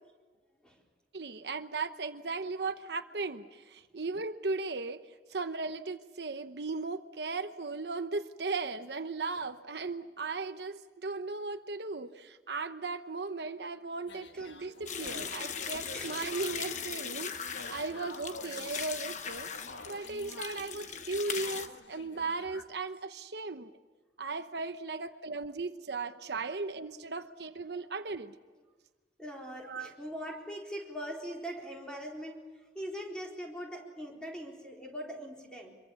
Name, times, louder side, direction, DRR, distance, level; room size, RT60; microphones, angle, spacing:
voice 1, 1.1-5.0 5.3-19.5 19.9-23.7 24.2-28.3 29.6-30.0, right 3 dB, 70° right, 9 dB, 1.0 m, -37 dB
sound 1, 14.1-22.6, left 3 dB, 90° left, 1.6 m, -49 dB
sound 2, 14.9-21.7, left 7 dB, 45° left, 1.2 m, -39 dB
voice 2, 29.2-32.4 32.7-35.8, equal, 5° left, -1 dB, 4.2 m, -41 dB
25.0 x 23.0 x 7.2 m, 1.4 s
head